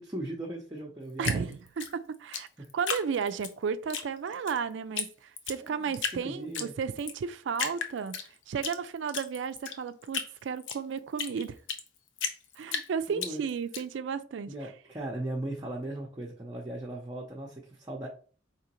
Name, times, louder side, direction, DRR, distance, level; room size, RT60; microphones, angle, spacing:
voice 1, 0.0-1.6 2.6-2.7 5.6-6.7 13.1-13.4 14.5-18.1, right 1 dB, 20° right, 0.5 m, -38 dB
Drip, 1.2-3.5 3.9-4.6 5.0-5.1 5.4-6.2 6.5-7.2 7.5-8.8 9.1-11.9 12.2-13.8, left 6 dB, 80° left, 0.6 m, -34 dB
voice 2, 1.2-2.5 2.7-8.2 8.5-11.5 12.6-14.7, right 6 dB, 75° right, 0.3 m, -33 dB
4.9 x 2.9 x 2.9 m
head